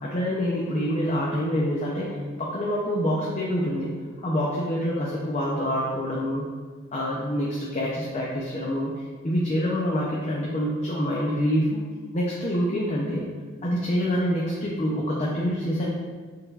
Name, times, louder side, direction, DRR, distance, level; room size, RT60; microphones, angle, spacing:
voice 1, 0.0-3.9 4.2-6.5 6.9-8.9 9.2-11.8 12.1-13.3 13.6-15.9, equal, 35° left, -4 dB, 0.5 m, -26 dB
6.5 x 3.3 x 2.4 m, 1.5 s
head